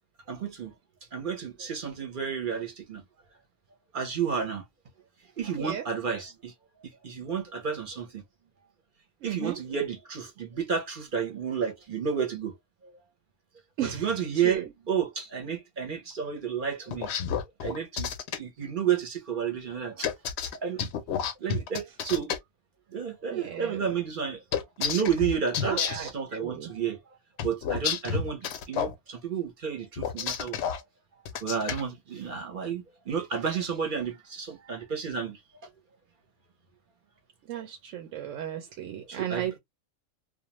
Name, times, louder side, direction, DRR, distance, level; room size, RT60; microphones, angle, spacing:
voice 1, 0.3-0.7 1.1-3.0 3.9-4.6 5.4-6.5 7.0-8.2 9.2-12.5 13.8-17.1 17.6-18.1 18.4-20.1 20.6-20.8 21.4-22.3 22.9-24.4 24.8-27.0 27.4-28.4 28.7-30.6 31.4-35.4 39.1-39.6, right 7 dB, 45° right, 0.8 m, -31 dB
voice 2, 9.2-9.6 13.8-14.1 14.3-14.7 23.3-23.9 25.6-26.7 37.5-39.6, right 10 dB, 75° right, 0.9 m, -35 dB
sound 1, 16.9-18.4 20.0-22.4 24.5-26.1 27.4-28.9 30.0-30.8 31.3-31.8, left 7 dB, 65° left, 0.7 m, -30 dB
2.4 x 2.2 x 2.9 m
omnidirectional pair, 1.4 m